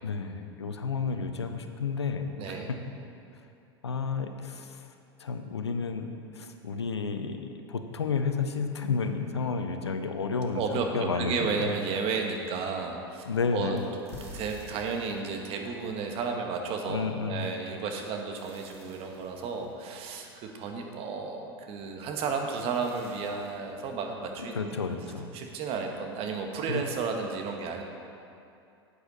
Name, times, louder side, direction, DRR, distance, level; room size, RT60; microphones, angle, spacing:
voice 1, 0.0-2.8 3.8-4.8 5.2-11.7 13.3-13.8 16.9-17.4 24.5-25.4 26.7-26.8, left 5 dB, 90° left, 7 dB, 0.7 m, -31 dB
voice 2, 2.4-2.7 10.5-13.2 13.5-13.8 14.3-24.7 25.3-27.8, right 5 dB, 45° right, 2 dB, 1.4 m, -33 dB
sound 1, 13.8-16.4 18.0-21.0 22.2-22.3 22.5-24.3, right 3 dB, 85° right, 1.9 m, -57 dB
sound 2, 14.1-16.6, left 3 dB, 50° left, 2.2 m, -47 dB
11.5 x 8.4 x 4.2 m, 2.6 s
hypercardioid pair, 90°, 14 cm